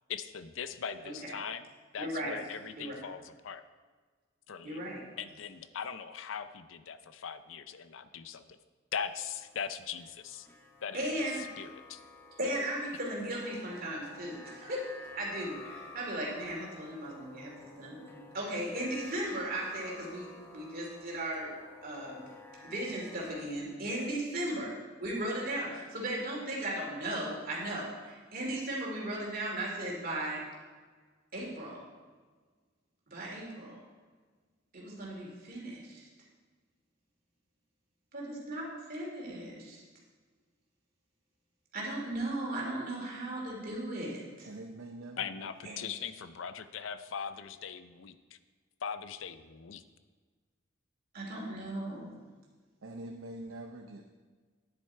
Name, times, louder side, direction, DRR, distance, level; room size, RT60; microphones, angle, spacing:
voice 1, 0.1-1.6 1.9-3.6 4.5-4.8 5.2-8.6 8.9-10.5 10.8-11.0 11.6-12.0 45.2-48.2 48.8-49.8, left 7 dB, 75° left, 12 dB, 0.5 m, -40 dB
voice 2, 2.0-2.3 2.8-2.9 4.6-5.0 10.9-11.4 12.4-14.8 15.1-21.5 21.8-22.3 22.6-24.7 25.0-30.4 31.3-31.8 33.1-33.8 34.7-36.1 38.1-39.8 41.7-44.5 51.1-52.2, right 1 dB, 50° right, -3 dB, 2.7 m, -36 dB
sound 1, 9.0-23.4, left 3 dB, 10° left, 0.7 m, -52 dB
voice 3, 44.4-46.0 52.8-54.1, right 2 dB, 85° right, 3 dB, 0.7 m, -45 dB
10.0 x 7.9 x 4.5 m, 1.4 s
head